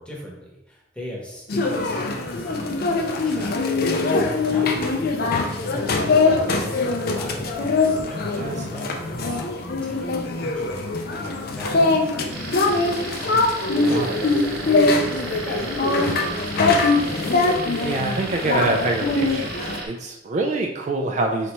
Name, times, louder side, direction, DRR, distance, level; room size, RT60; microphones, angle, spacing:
voice 1, 0.0-17.2, equal, 5° left, -3 dB, 0.9 m, -38 dB
sound 1, 1.5-19.8, left 3 dB, 60° left, 0.5 m, -22 dB
sound 2, 12.3-19.9, right 3 dB, 65° right, 0.8 m, -35 dB
voice 2, 13.3-14.3 17.8-21.5, right 2 dB, 40° right, 2 dB, 0.3 m, -26 dB
4.0 x 3.3 x 2.9 m, 0.90 s
head